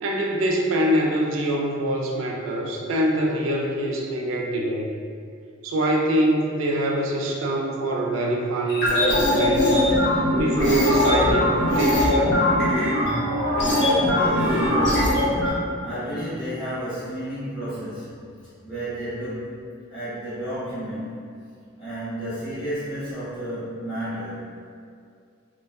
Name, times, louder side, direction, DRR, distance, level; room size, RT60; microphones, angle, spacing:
voice 1, 0.0-4.9 5.6-9.7 10.4-12.4, right 1 dB, 80° right, 0 dB, 0.4 m, -24 dB
sound 1, 8.7-15.5, left 1 dB, 55° left, 0.7 m, -21 dB
voice 2, 14.0-18.4 18.6-21.4 21.8-24.5, right 1 dB, ahead, -17 dB, 0.7 m, -32 dB
2.6 x 2.1 x 2.3 m, 2.3 s
head